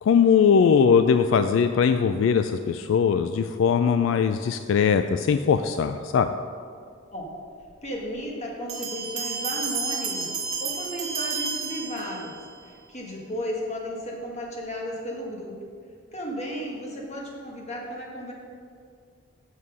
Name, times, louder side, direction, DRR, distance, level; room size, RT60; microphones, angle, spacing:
voice 1, 0.0-6.3, left 6 dB, 70° left, 9 dB, 0.3 m, -20 dB
voice 2, 7.8-10.3 10.6-12.3 12.6-15.5 16.1-18.3, equal, 35° left, -1 dB, 1.5 m, -34 dB
Bell, 8.7-12.5, right 5 dB, 35° right, 1.6 m, -31 dB
7.3 x 6.3 x 5.6 m, 2.2 s
head